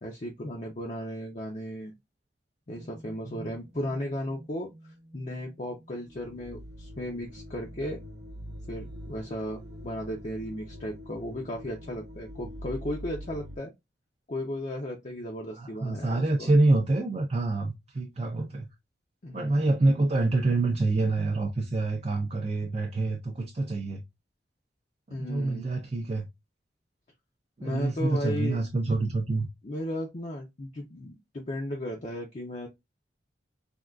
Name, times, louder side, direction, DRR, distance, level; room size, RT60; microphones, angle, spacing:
voice 1, 0.0-1.9 2.7-4.7 5.1-8.0 8.7-13.7 14.3-16.5 19.2-19.7 25.1-25.7 27.6-28.6 29.6-32.7, left 1 dB, 40° left, 0.5 m, -35 dB
sound 1, 2.7-5.5 5.8-13.6, equal, 75° right, 0.8 m, -44 dB
voice 2, 15.6-18.7 19.3-24.0 25.1-26.3 27.6-29.5, right 2 dB, 35° right, 0.4 m, -26 dB
3.5 x 2.3 x 2.2 m
head